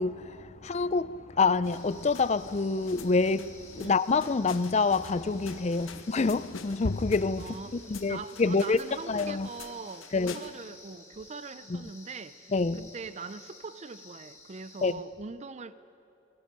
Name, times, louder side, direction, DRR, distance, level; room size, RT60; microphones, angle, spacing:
voice 1, 0.0-8.8 9.1-9.5 10.1-10.3 11.7-11.9 12.5-12.9 14.8-14.9, left 4 dB, 35° left, 0.4 m, -27 dB
sound 1, 1.6-10.7, left 3 dB, 80° left, 1.0 m, -43 dB
sound 2, 1.6-14.9, left 3 dB, 15° left, 2.4 m, -53 dB
voice 2, 7.4-7.7 8.1-15.7, right 4 dB, 35° right, 0.5 m, -42 dB
28.0 x 18.5 x 5.3 m
head